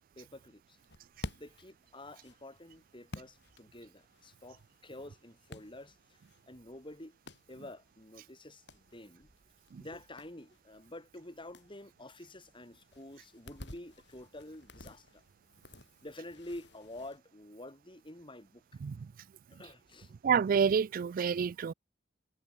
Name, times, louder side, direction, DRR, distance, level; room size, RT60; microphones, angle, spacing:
voice 1, 0.2-0.6 1.4-6.0 6.5-7.2 7.5-9.3 9.8-15.2 16.0-18.6 19.5-20.2, left 1 dB, 30° left, 5.4 m, -49 dB
sound 1, 0.8-17.2, left 1 dB, 70° left, 6.8 m, -53 dB
voice 2, 20.2-21.7, right 6 dB, 50° right, 0.3 m, -28 dB
head